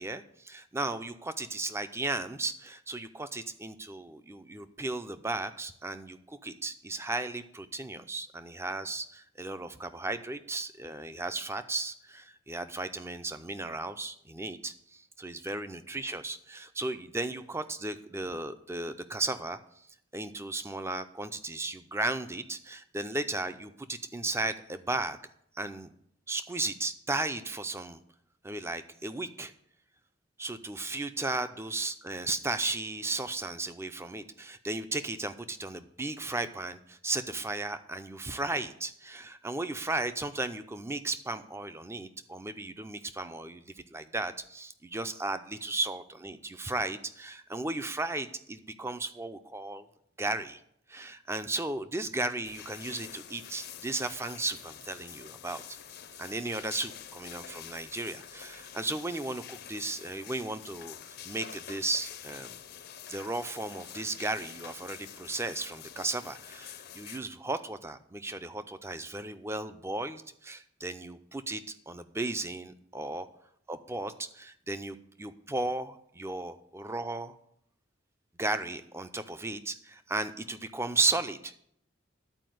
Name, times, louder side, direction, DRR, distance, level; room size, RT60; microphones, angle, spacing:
voice 1, 0.0-19.6 20.1-25.2 25.6-25.9 26.3-28.0 28.4-29.5 30.4-49.8 50.2-50.6 50.9-55.8 56.2-62.6 63.1-73.3 73.7-77.3 78.4-81.6, right 2 dB, 15° right, 10 dB, 0.5 m, -35 dB
sound 1, 52.4-67.2, left 9 dB, 50° left, 0.6 m, -47 dB
11.0 x 4.6 x 7.7 m, 0.70 s
head